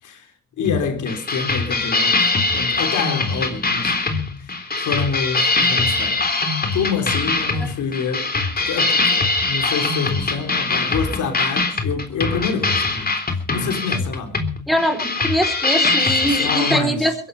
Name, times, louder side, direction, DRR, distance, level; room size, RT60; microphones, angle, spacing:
voice 1, 0.0-4.0 4.4-6.3 6.7-13.2 13.5-14.5 16.2-17.2, left 5 dB, 75° left, 4.0 m, -27 dB
sound 1, 0.7-16.8, left 3 dB, 30° left, 3.6 m, -22 dB
voice 2, 14.7-17.1, equal, ahead, 4.3 m, -22 dB
22.0 x 11.5 x 5.5 m
cardioid pair, 90°, 30 cm